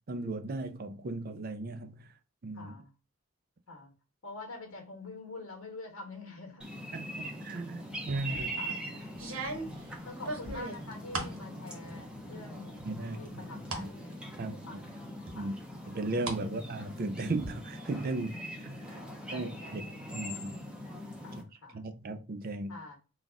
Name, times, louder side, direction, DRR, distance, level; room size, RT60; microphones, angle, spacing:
voice 1, 0.1-2.0 2.4-2.7 6.9-8.5 12.9-13.5 13.8-13.9 14.4-14.6 15.4-15.5 15.9-18.3 18.6-19.0 19.3-19.8 20.1-20.6 21.7-22.8, right 2 dB, 45° right, 0.4 m, -36 dB
voice 2, 2.5-2.9 3.7-3.9 4.2-7.4 8.3-9.1 9.5-9.8 10.0-15.0 15.3-15.6 16.4-16.5 18.3-18.4 18.9-20.0 21.2-21.8 22.7-23.0, left 2 dB, 75° left, 1.3 m, -47 dB
sound 1, 6.6-21.4, equal, 5° right, 0.7 m, -42 dB
sound 2, 8.1-8.5 9.1-11.4 11.8-12.4 12.8-13.9 14.3-14.4 15.3-16.4 16.7-17.5, right 2 dB, 75° right, 1.2 m, -39 dB
4.0 x 2.4 x 3.5 m
head